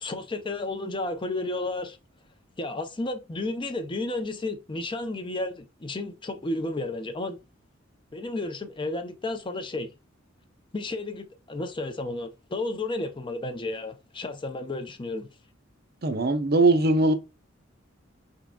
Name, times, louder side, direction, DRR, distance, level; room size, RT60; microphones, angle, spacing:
voice 1, 0.0-2.0 2.6-7.4 8.1-9.9 10.7-15.3, left 2 dB, 25° left, 0.5 m, -32 dB
voice 2, 16.0-17.1, right 2 dB, 50° right, 0.6 m, -20 dB
5.0 x 3.6 x 2.2 m
head